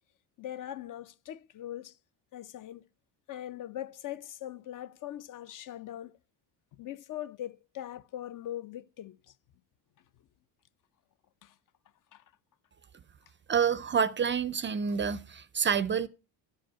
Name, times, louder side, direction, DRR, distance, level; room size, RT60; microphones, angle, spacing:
voice 1, 0.4-2.0 2.3-2.9 3.3-6.1 6.8-9.3 11.4-11.5 12.1-12.2, left 12 dB, 50° left, 0.5 m, -41 dB
voice 2, 13.5-16.1, right 7 dB, 30° right, 0.4 m, -28 dB
12.0 x 5.1 x 5.6 m
cardioid pair, 120°, 43 cm